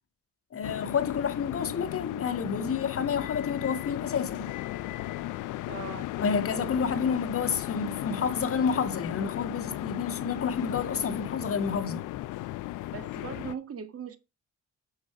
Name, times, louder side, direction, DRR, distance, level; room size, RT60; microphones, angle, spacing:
voice 1, 0.5-4.5 6.2-12.0, left 6 dB, 50° left, 1.6 m, -29 dB
Room Tone Ambience Large Parking Garage Car Passbys, 0.6-13.6, left 16 dB, 85° left, 0.6 m, -36 dB
voice 2, 5.7-6.1 12.9-14.2, right 7 dB, 50° right, 1.8 m, -39 dB
7.0 x 6.4 x 4.8 m
cardioid pair, 90°, 30 cm